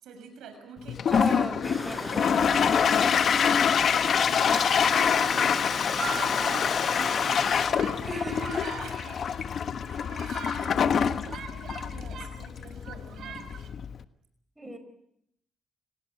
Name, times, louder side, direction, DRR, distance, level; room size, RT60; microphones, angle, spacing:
voice 1, 0.0-1.0 2.2-8.4 8.8-9.2 10.1-13.5 14.6-14.8, right 5 dB, 80° right, 7 dB, 6.7 m, -45 dB
Toilet flush, 0.9-14.0, left 7 dB, 55° left, 1.2 m, -26 dB
voice 2, 1.1-2.3 8.0-8.5 14.6-14.8, right 1 dB, 10° right, 8 dB, 4.9 m, -35 dB
sound 1, 1.6-7.7, left 1 dB, 15° left, 5.6 m, -38 dB
sound 2, 3.6-3.7 4.4-9.4 9.8-12.4 12.7-13.7, right 7 dB, 65° right, 4.3 m, -42 dB
28.0 x 19.0 x 8.0 m, 0.75 s
cardioid pair, 90°, 0 cm